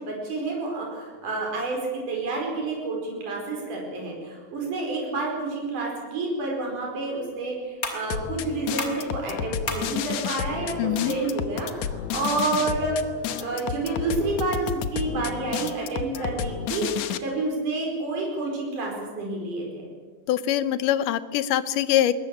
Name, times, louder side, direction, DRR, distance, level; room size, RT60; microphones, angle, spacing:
voice 1, 0.0-13.0 13.4-19.7, right 3 dB, 75° right, -1 dB, 6.3 m, -29 dB
sound 1, 6.3-13.3, left 3 dB, 30° left, 2.9 m, -40 dB
sound 2, 8.1-17.2, left 9 dB, 70° left, 2.2 m, -31 dB
voice 2, 10.8-11.1 20.3-22.1, left 12 dB, 90° left, 14 dB, 2.5 m, -23 dB
21.0 x 20.5 x 8.5 m, 1.5 s
omnidirectional pair, 3.6 m